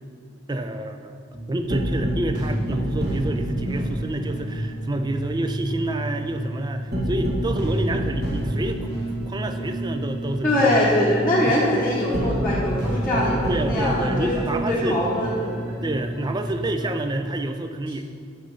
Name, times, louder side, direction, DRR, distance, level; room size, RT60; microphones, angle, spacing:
voice 1, 0.5-1.2 1.5-8.9 9.3-10.8 11.5-11.6 13.5-15.0 15.8-18.0, right 1 dB, 20° right, 7 dB, 0.4 m, -28 dB
sound 1, 1.3-17.0, right 1 dB, 50° right, 1.4 m, -28 dB
voice 2, 10.4-14.3 14.7-15.8, left 1 dB, 10° left, -8 dB, 1.0 m, -22 dB
6.5 x 6.3 x 5.5 m, 2.3 s
head